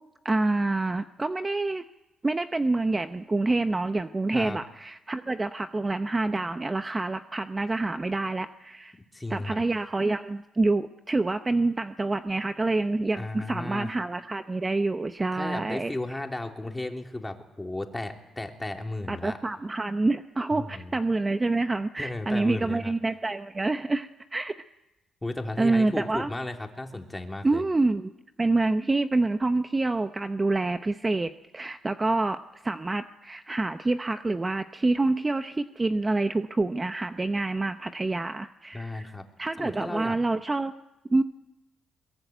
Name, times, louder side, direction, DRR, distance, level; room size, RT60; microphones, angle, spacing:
voice 1, 0.2-1.8 2.2-9.0 9.3-15.9 19.1-24.6 25.6-26.3 27.4-28.1 28.4-39.1 39.4-40.7 41.1-41.2, right 2 dB, 20° right, 9 dB, 0.8 m, -27 dB
voice 2, 9.1-9.6 13.2-13.9 15.3-19.4 20.5-21.0 22.0-22.9 25.2-27.6 38.7-39.3 39.6-40.2, left 2 dB, 10° left, 3 dB, 3.1 m, -34 dB
22.0 x 22.0 x 9.3 m, 0.96 s
cardioid pair, 90°, 0 cm